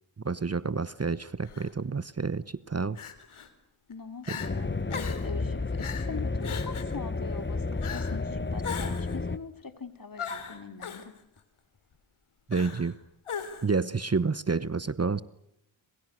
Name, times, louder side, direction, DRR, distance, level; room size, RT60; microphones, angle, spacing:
voice 1, 0.2-3.0 4.3-4.4 12.5-12.9 13.6-15.2, right 4 dB, 30° right, 17 dB, 1.0 m, -29 dB
Crying sobbing, 1.4-1.7 3.0-3.5 3.9-4.0 4.2-4.5 4.9-5.3 5.8-6.1 6.4-7.0 7.8-8.2 8.6-9.2 10.2-11.1 12.5-12.9 13.3-13.8, left 6 dB, 85° left, 3.5 m, -38 dB
voice 2, 3.9-11.1, left 5 dB, 45° left, 10 dB, 3.1 m, -42 dB
sound 1, 4.4-9.4, left 3 dB, 25° left, 1.5 m, -31 dB
30.0 x 27.0 x 6.4 m, 0.81 s
cardioid pair, 50°, 49 cm